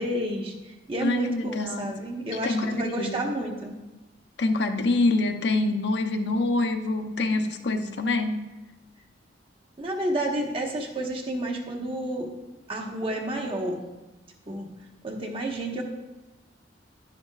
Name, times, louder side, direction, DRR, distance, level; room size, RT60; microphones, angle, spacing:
voice 1, 0.0-3.8 9.8-12.3 12.7-13.8 14.5-14.7 15.0-15.8, right 1 dB, 30° right, 1 dB, 1.2 m, -30 dB
voice 2, 1.0-1.9 2.4-3.3 4.4-8.4, left 2 dB, 65° left, 5 dB, 0.7 m, -26 dB
10.5 x 10.5 x 2.4 m, 1.1 s
head